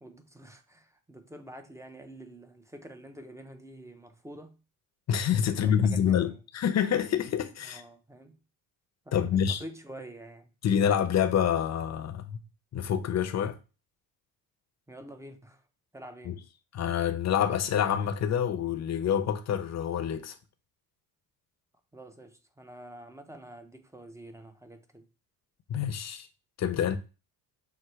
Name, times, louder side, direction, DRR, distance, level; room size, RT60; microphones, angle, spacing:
voice 1, 0.0-4.6 5.6-6.4 7.6-8.4 9.1-10.5 14.9-15.6 15.9-16.4 21.9-25.1, right 1 dB, 5° right, 0.6 m, -47 dB
voice 2, 5.1-7.8 9.1-9.6 10.6-12.4 12.7-13.6 16.3-16.4 16.7-20.3 25.7-26.3 26.6-27.0, left 8 dB, 40° left, 0.7 m, -27 dB
5.8 x 2.1 x 3.1 m
supercardioid pair, 80°, 40 cm